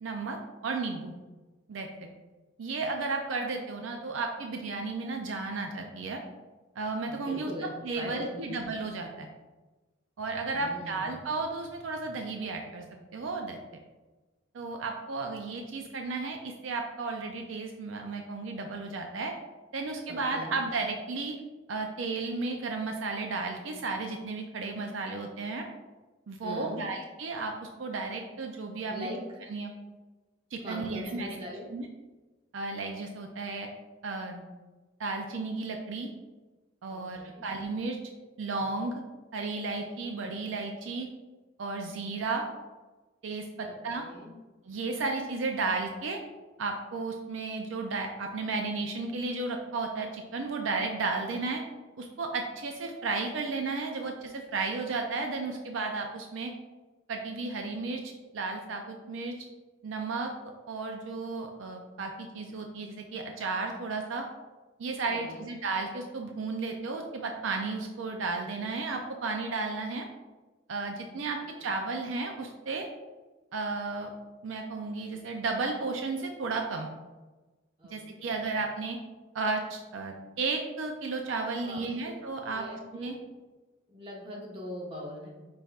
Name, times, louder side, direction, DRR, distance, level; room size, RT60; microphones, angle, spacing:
voice 1, 0.0-0.4 0.6-1.1 1.7-1.9 2.6-6.2 6.8-7.5 7.8-9.3 10.2-12.8 13.1-13.6 14.5-19.3 19.7-21.3 21.7-25.6 26.3-29.1 29.5-29.7 30.5-31.4 31.7-31.9 32.5-33.7 34.0-34.4 35.0-36.1 36.8-38.0 38.4-38.9 39.3-41.1 41.6-42.4 43.2-44.0 44.6-46.2 46.6-51.6 52.0-56.5 57.1-59.3 59.8-60.3 60.7-64.2 64.8-70.1 70.7-72.9 73.5-74.1 74.4-76.9 77.9-79.0 79.3-82.7 82.9-83.2, right 3 dB, 70° right, 3 dB, 0.4 m, -33 dB
voice 2, 7.1-7.7 7.9-8.6 10.5-11.1 20.1-20.6 26.4-26.8 28.9-29.2 30.6-31.7 36.9-37.4 43.7-44.3 65.1-65.5 71.1-71.7 77.8-78.3 81.6-81.8 82.5-83.3 83.9-85.3, left 1 dB, 25° right, -2 dB, 0.9 m, -42 dB
5.5 x 4.1 x 2.4 m, 1.2 s
head